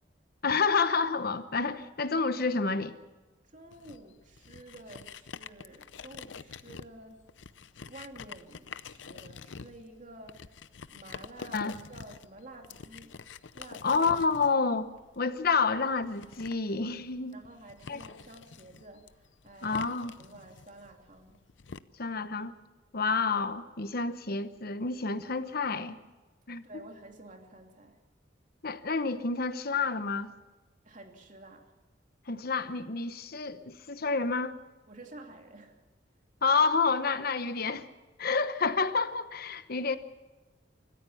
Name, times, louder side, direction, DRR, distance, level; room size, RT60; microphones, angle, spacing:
voice 1, 0.4-2.9 11.5-11.7 13.8-14.9 15.2-17.4 17.9-18.0 19.6-20.1 22.0-22.5 22.9-26.0 26.5-26.6 28.6-30.3 32.3-34.6 36.4-37.9 38.2-40.0, left 4 dB, 55° left, 11 dB, 1.0 m, -29 dB
voice 2, 3.4-7.2 7.9-10.6 10.9-13.2 13.5-14.0 17.3-19.8 20.2-21.4 26.6-28.0 30.8-31.7 34.9-35.8, right 2 dB, 45° right, 3 dB, 2.7 m, -50 dB
sound 1, 3.7-21.8, left 5 dB, 80° left, 0.7 m, -47 dB
25.5 x 14.5 x 7.1 m, 1.2 s
head